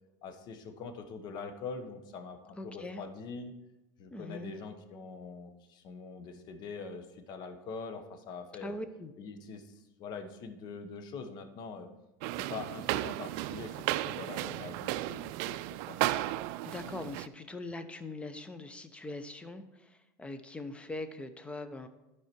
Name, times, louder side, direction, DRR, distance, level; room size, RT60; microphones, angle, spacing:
voice 1, 0.2-3.5 4.0-8.8 9.2-11.9 12.3-16.0, left 4 dB, 50° left, 7 dB, 1.1 m, -44 dB
voice 2, 2.6-3.0 4.1-4.5 8.6-9.1 16.6-21.9, left 2 dB, 10° left, 10 dB, 0.7 m, -42 dB
sound 1, 12.2-17.3, right 15 dB, 65° right, 0.3 m, -34 dB
11.5 x 4.8 x 4.5 m, 0.95 s
supercardioid pair, 115°, 10 cm